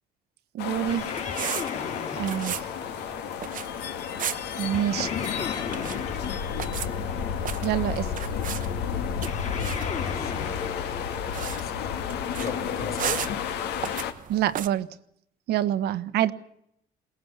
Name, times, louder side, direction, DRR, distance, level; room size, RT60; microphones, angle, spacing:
voice 1, 0.5-1.1 2.2-2.6 4.6-5.1 7.6-8.1 14.3-14.9 15.5-16.3, right 11 dB, 75° right, 12 dB, 1.3 m, -26 dB
sound 1, 0.6-14.1, left 8 dB, 85° left, 2.2 m, -31 dB
sound 2, 0.7-14.7, right 10 dB, 50° right, 1.1 m, -38 dB
sound 3, 0.9-3.5 4.7-7.3 9.2-11.8, left 6 dB, 45° left, 3.6 m, -36 dB
voice 2, 9.6-13.2, left 6 dB, 60° left, 2 dB, 5.0 m, -38 dB
22.5 x 19.0 x 7.4 m, 0.73 s
cardioid pair, 110°, 17 cm